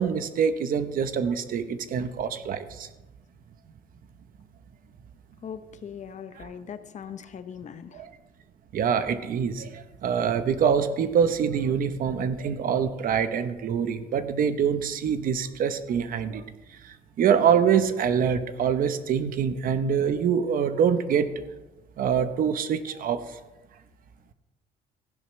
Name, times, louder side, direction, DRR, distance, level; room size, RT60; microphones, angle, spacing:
voice 1, 0.0-2.9 6.4-6.5 7.9-8.1 8.7-16.4 17.2-21.3 22.0-23.2, right 7 dB, 55° right, 10 dB, 1.0 m, -25 dB
voice 2, 5.4-8.0, left 8 dB, 45° left, 11 dB, 0.8 m, -40 dB
15.0 x 10.5 x 3.2 m, 1.1 s
cardioid pair, 110°, 17 cm